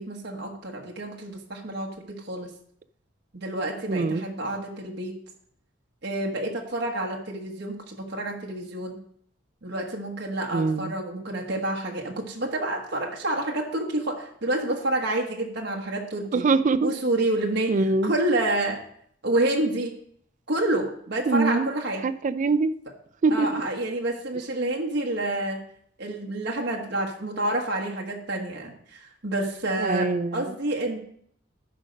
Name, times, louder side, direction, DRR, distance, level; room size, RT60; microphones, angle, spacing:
voice 1, 0.0-2.5 3.3-5.1 6.0-9.0 9.6-16.4 16.8-17.8 18.0-18.8 19.2-20.0 20.5-22.0 23.3-25.6 26.0-31.0, right 1 dB, 60° right, -1 dB, 1.2 m, -28 dB
voice 2, 3.9-4.2 10.5-10.9 16.3-16.9 17.7-18.1 21.3-21.7 22.0-22.7 23.2-23.6 29.8-30.5, right 3 dB, 40° right, 15 dB, 0.4 m, -23 dB
12.5 x 5.2 x 5.2 m, 0.66 s
head